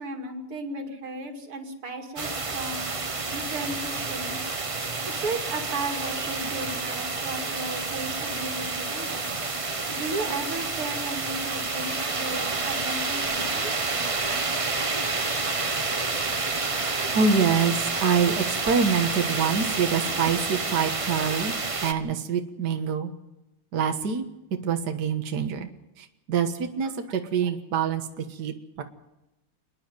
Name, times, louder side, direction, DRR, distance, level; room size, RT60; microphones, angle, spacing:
voice 1, 0.0-2.8 3.3-4.6 5.1-9.3 9.9-13.9, right 2 dB, 85° right, 4 dB, 3.3 m, -35 dB
sound 1, 2.2-21.9, right 3 dB, 35° right, 0.5 m, -29 dB
voice 2, 17.1-21.5 21.8-23.1 23.7-24.3 24.6-25.7 26.0-28.8, right 6 dB, 50° right, 5 dB, 1.9 m, -25 dB
29.0 x 10.0 x 9.1 m, 0.95 s
omnidirectional pair, 2.4 m